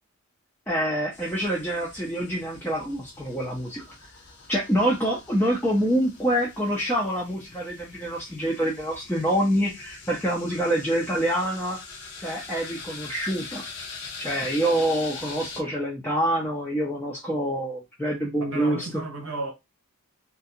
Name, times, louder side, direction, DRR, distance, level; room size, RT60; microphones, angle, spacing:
voice 1, 0.7-3.8 4.5-11.8 12.2-13.6 14.2-18.9, right 1 dB, 10° left, 0.5 m, -26 dB
sound 1, 1.1-15.6, left 4 dB, 55° left, 0.7 m, -43 dB
voice 2, 18.4-19.5, right 3 dB, 60° right, 0.7 m, -33 dB
2.4 x 2.2 x 2.7 m
head